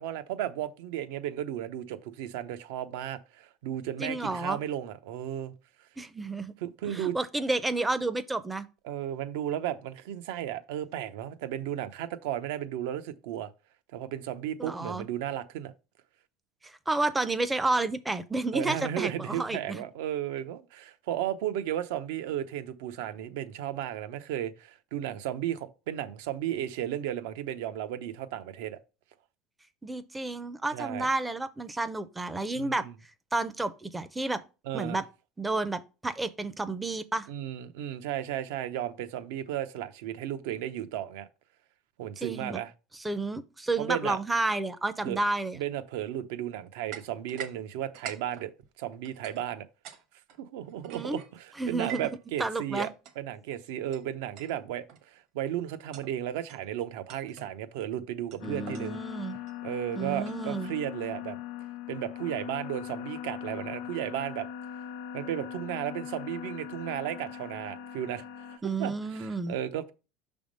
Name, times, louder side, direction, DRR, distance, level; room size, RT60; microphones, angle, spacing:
voice 1, 0.0-5.5 6.6-7.2 8.8-13.5 13.9-15.7 18.5-28.8 30.7-31.1 32.5-32.9 34.7-35.0 37.3-41.3 42.0-42.7 43.8-44.2 45.0-45.2 45.6-48.5 48.8-49.6 50.4-52.9 53.2-59.0 59.6-61.4 61.9-64.5 65.1-69.9, right 11 dB, 80° right, 0.6 m, -34 dB
voice 2, 4.0-4.6 6.0-6.5 6.9-8.7 14.6-15.0 16.6-19.8 29.8-32.8 33.3-34.4 34.7-35.0 35.4-37.3 42.2-42.6 43.0-45.6 50.9-51.2 51.6-52.1 52.4-52.9 58.4-59.4 60.0-60.7 68.6-69.6, right 2 dB, 10° right, 0.4 m, -31 dB
sound 1, 46.9-47.6 47.8-50.0 50.3-52.2 52.8-53.1 53.9-54.0 54.4-54.6 54.9-55.2 55.7-56.2 56.5-56.7 57.1-57.5 58.3-60.8, right 8 dB, 55° right, 1.0 m, -46 dB
sound 2, 58.4-68.6, left 10 dB, 80° left, 0.8 m, -40 dB
6.0 x 3.5 x 5.1 m
cardioid pair, 160°, 0 cm